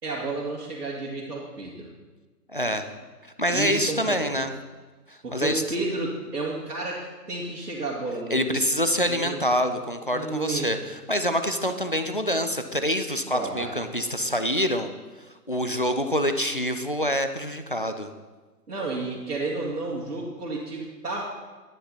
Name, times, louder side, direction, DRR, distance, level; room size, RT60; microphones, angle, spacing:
voice 1, 0.0-1.9 3.5-4.2 5.2-8.6 9.1-9.5 10.1-10.7 13.3-13.7 18.7-21.2, right 3 dB, 70° right, -6 dB, 2.5 m, -31 dB
voice 2, 2.5-2.9 3.2-4.5 5.1-5.6 8.3-14.9 15.5-18.1, equal, 35° left, 8 dB, 0.4 m, -26 dB
10.5 x 10.0 x 4.2 m, 1.3 s
figure-of-eight pair, 145°, 50 cm